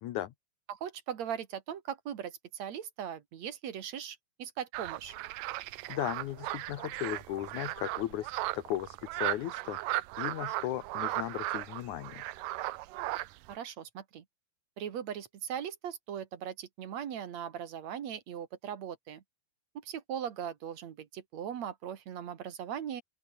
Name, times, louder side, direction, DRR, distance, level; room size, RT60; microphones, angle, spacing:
voice 1, 0.0-0.3 5.9-12.2, left 12 dB, 90° left, 1.7 m, -36 dB
voice 2, 0.7-5.1 13.5-14.2 14.8-19.2 19.8-23.0, right 9 dB, 55° right, 2.3 m, -39 dB
sound 1, 4.7-13.6, right 17 dB, 90° right, 1.9 m, -36 dB
open air
omnidirectional pair, 4.9 m